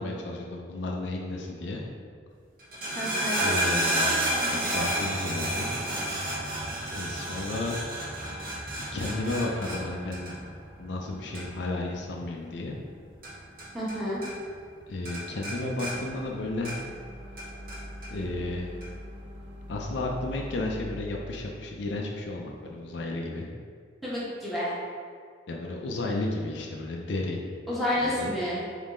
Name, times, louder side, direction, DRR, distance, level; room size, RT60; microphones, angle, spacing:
voice 1, 0.0-1.8 3.4-4.2 4.5-5.7 6.9-7.8 8.7-10.3 10.8-12.8 14.9-16.7 18.1-18.7 19.7-23.5 25.5-27.4 28.0-28.3, left 2 dB, 65° left, 0 dB, 0.4 m, -33 dB
sound 1, 2.6-14.0 14.2-14.8 15.1-17.0 17.4-18.1 18.8-18.9, right 1 dB, 50° right, 0.9 m, -31 dB
voice 2, 2.9-3.5 13.7-14.2 24.0-24.7 27.7-28.6, left 1 dB, ahead, -10 dB, 1.0 m, -29 dB
sound 2, 15.8-22.9, equal, 65° right, 0.5 m, -43 dB
3.6 x 3.2 x 3.7 m, 2.1 s
head